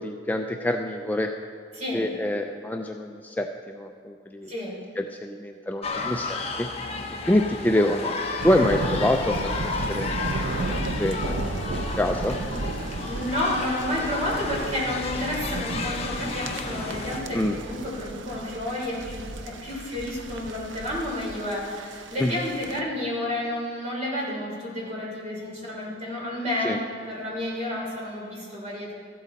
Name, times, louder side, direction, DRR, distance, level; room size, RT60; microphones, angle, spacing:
voice 1, 0.0-1.3 1.9-4.5 5.0-6.7 7.3-8.2 8.4-10.2 10.7-12.3 17.3-17.6 22.2-22.4 26.6-26.8, left 1 dB, 10° left, 3 dB, 0.4 m, -26 dB
voice 2, 4.5-4.8 13.0-28.9, left 1 dB, 40° right, -4 dB, 3.7 m, -30 dB
sound 1, 5.8-17.2, left 3 dB, 35° left, 1.0 m, -33 dB
sound 2, 8.4-22.8, right 2 dB, 75° right, 0.7 m, -34 dB
14.5 x 12.5 x 4.0 m, 2.2 s
head